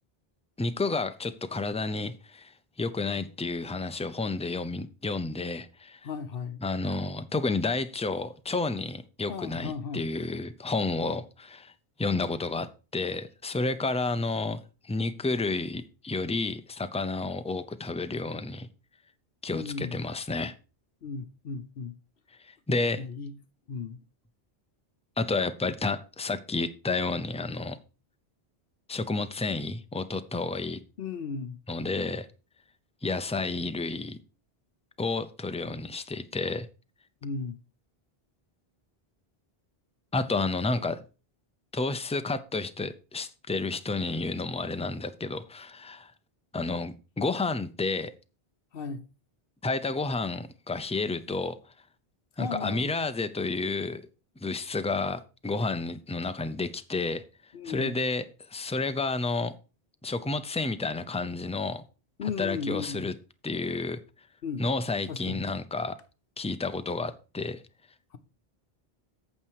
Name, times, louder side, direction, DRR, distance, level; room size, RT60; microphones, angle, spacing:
voice 1, 0.6-2.5 2.8-6.0 6.6-11.7 12.0-12.7 12.9-18.7 19.4-20.5 22.4-23.0 25.2-27.8 28.9-30.8 31.7-32.3 33.0-34.2 35.0-36.7 40.1-41.0 41.7-46.1 46.5-48.1 49.6-51.6 52.4-54.0 54.4-57.2 57.6-58.2 58.5-59.5 60.0-61.8 62.4-63.1 63.4-64.0 64.6-66.0 66.4-67.6, left 3 dB, 10° left, 0.4 m, -30 dB
voice 2, 6.0-6.6 9.3-10.1 19.5-20.0 21.0-22.0 23.0-23.3 23.7-24.0 31.0-31.6 37.2-37.6 48.7-49.0 52.4-52.9 57.5-58.0 62.2-63.1 64.4-64.7 65.1-65.5 68.1-68.2, left 5 dB, 65° left, 0.9 m, -35 dB
8.9 x 6.8 x 4.6 m
omnidirectional pair, 1.0 m